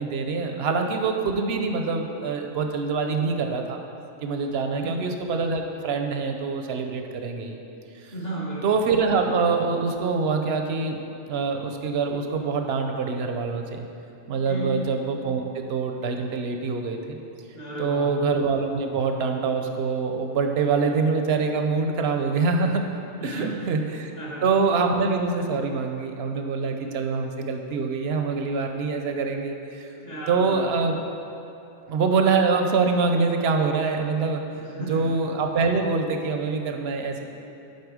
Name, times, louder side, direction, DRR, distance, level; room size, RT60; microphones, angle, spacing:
voice 1, 0.0-3.8 4.2-7.6 8.0-8.1 8.6-13.9 14.3-17.2 17.8-24.1 24.4-29.9 30.3-31.0 31.9-34.5 34.9-37.2, right 4 dB, 65° right, 4 dB, 0.7 m, -25 dB
voice 2, 8.1-8.6 14.4-14.8 17.5-18.2 23.1-23.6 24.2-24.4 30.0-30.6 34.5-35.1, right 2 dB, 50° left, -5 dB, 1.8 m, -34 dB
9.5 x 4.2 x 4.8 m, 2.9 s
omnidirectional pair, 1.4 m